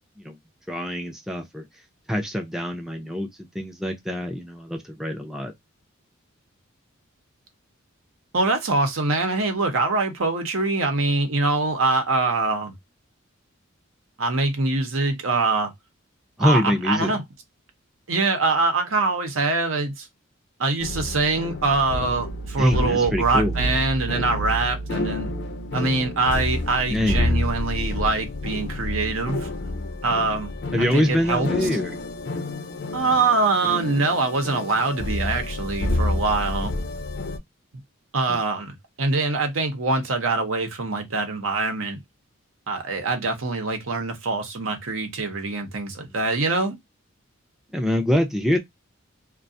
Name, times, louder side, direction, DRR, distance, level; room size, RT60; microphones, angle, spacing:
voice 1, 0.7-1.6 2.1-3.3 3.5-5.5 16.4-17.2 22.6-23.5 26.9-27.4 30.7-32.0 38.3-38.4 46.0-46.1 47.7-48.6, left 1 dB, ahead, 0.4 m, -24 dB
voice 2, 8.3-12.7 14.2-15.7 16.4-17.2 18.1-20.1 20.6-25.3 25.7-29.5 30.0-30.5 30.8-31.7 32.9-36.7 38.1-42.0 42.7-46.7, right 3 dB, 70° right, 0.8 m, -24 dB
sound 1, 20.8-37.4, left 1 dB, 60° left, 0.5 m, -29 dB
2.4 x 2.2 x 2.5 m
head